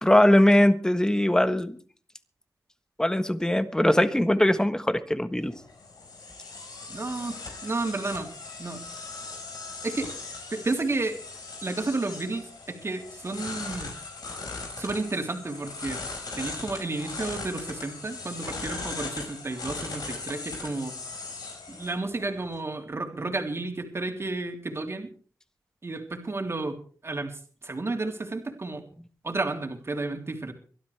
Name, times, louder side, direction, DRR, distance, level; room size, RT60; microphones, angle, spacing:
voice 1, 0.0-1.8 3.0-5.5, left 1 dB, 10° left, 11 dB, 1.4 m, -21 dB
sound 1, 5.4-22.6, left 3 dB, 75° left, 5.1 m, -39 dB
voice 2, 6.9-8.3 8.6-8.9 9.8-10.1 10.5-11.2 11.6-13.9 14.8-16.0 16.4-20.9 21.7-25.1 25.8-26.8 27.0-28.8 29.2-30.5, right 3 dB, 40° right, 4 dB, 3.3 m, -32 dB
23.5 x 12.0 x 3.4 m, 0.41 s
cardioid pair, 65°, 7 cm